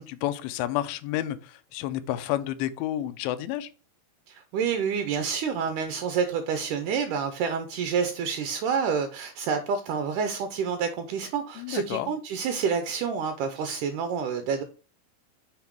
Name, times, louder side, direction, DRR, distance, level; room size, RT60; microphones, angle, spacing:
voice 1, 0.0-3.7 11.6-12.1, left 13 dB, 80° left, 2.3 m, -30 dB
voice 2, 4.3-14.6, right 6 dB, 85° right, 1.8 m, -28 dB
7.1 x 3.7 x 4.6 m
omnidirectional pair, 4.4 m